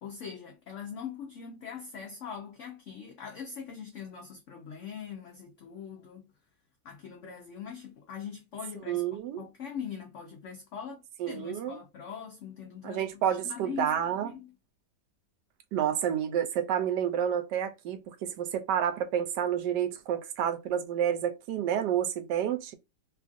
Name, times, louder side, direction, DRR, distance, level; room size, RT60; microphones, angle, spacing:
voice 1, 0.0-6.3 6.8-9.0 9.4-14.0 14.2-14.5, left 7 dB, 80° left, 0.6 m, -42 dB
voice 2, 8.9-9.4 11.2-11.8 12.8-14.3 15.7-22.7, right 9 dB, 80° right, 1.2 m, -29 dB
3.0 x 2.4 x 2.4 m
omnidirectional pair, 1.8 m